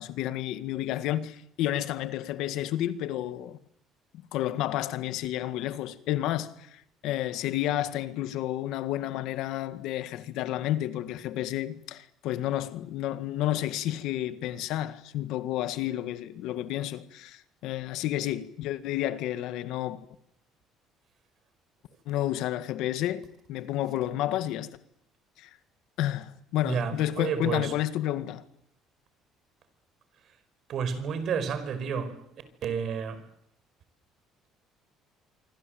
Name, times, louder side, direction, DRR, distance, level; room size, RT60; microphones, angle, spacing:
voice 1, 0.0-3.6 4.3-20.0 22.1-24.8 25.4-25.5 26.0-28.5, left 13 dB, 75° left, 1.8 m, -31 dB
voice 2, 26.6-27.7 30.7-32.2 32.6-33.2, right 6 dB, 50° right, 4.9 m, -30 dB
26.5 x 24.5 x 7.9 m
cardioid pair, 130°, 0 cm